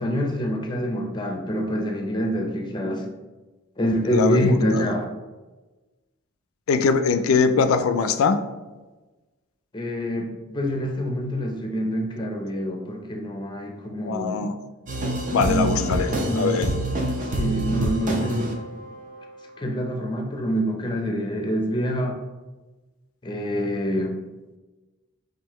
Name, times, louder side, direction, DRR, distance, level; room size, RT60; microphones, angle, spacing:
voice 1, 0.0-3.0 3.8-5.1 9.7-14.5 15.4-16.6 17.3-18.7 19.6-22.2 23.2-24.2, equal, 20° left, 3 dB, 0.5 m, -26 dB
voice 2, 4.1-4.9 6.7-8.4 14.0-14.6 15.3-16.7, left 5 dB, 75° left, 9 dB, 0.4 m, -22 dB
sound 1, 14.9-19.4, right 1 dB, 40° right, 0.6 m, -27 dB
5.5 x 2.6 x 3.0 m, 1.2 s
head